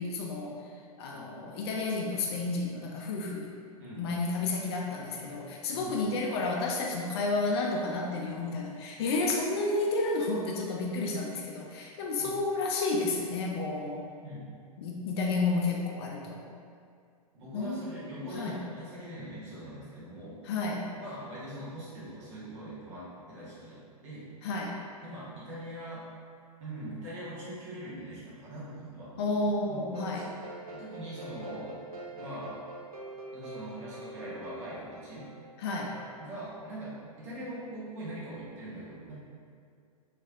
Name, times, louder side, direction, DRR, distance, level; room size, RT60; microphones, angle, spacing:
voice 1, 0.0-3.6 4.0-14.0 14.8-16.5 17.5-17.9 18.2-18.6 20.4-20.9 24.4-24.8 29.2-30.2 35.6-36.0, left 3 dB, 40° left, -1 dB, 0.4 m, -31 dB
voice 2, 1.1-1.4 3.8-4.1 5.7-6.0 12.2-12.3 14.2-14.5 17.3-20.4 20.9-24.2 25.0-26.1 26.6-29.1 29.7-30.4 30.7-31.8 32.1-32.6 33.3-35.3 35.8-39.1, right 1 dB, 50° right, -9 dB, 1.4 m, -42 dB
sound 1, 29.9-36.2, right 2 dB, 70° right, 0.6 m, -45 dB
3.2 x 3.2 x 2.5 m, 2.3 s
figure-of-eight pair, 105°, 20 cm